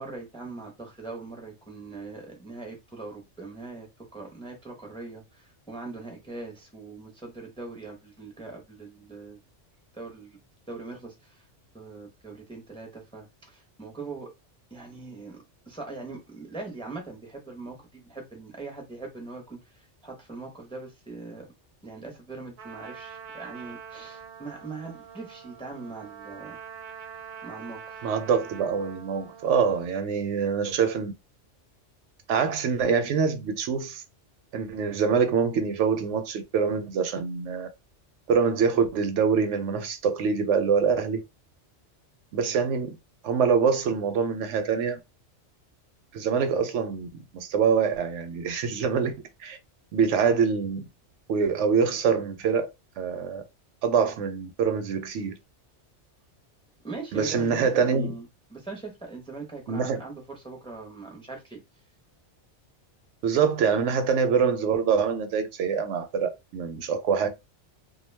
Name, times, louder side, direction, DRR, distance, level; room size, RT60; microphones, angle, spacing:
voice 1, 0.0-9.4 9.9-10.4 10.7-11.5 11.7-14.3 14.7-15.4 15.7-21.5 21.8-26.6 27.4-28.1 56.8-61.6, right 3 dB, 5° left, 0.6 m, -41 dB
Trumpet, 22.6-29.9, right 7 dB, 50° right, 0.7 m, -44 dB
voice 2, 28.0-31.1 32.3-34.0 34.5-37.7 38.3-41.2 42.3-43.0 43.2-45.0 46.1-49.2 49.4-49.6 49.9-50.8 51.3-52.7 53.0-53.4 53.8-55.3 57.1-58.1 59.7-60.0 63.2-67.3, right 6 dB, 80° right, 0.9 m, -25 dB
2.2 x 2.2 x 3.2 m
omnidirectional pair, 1.2 m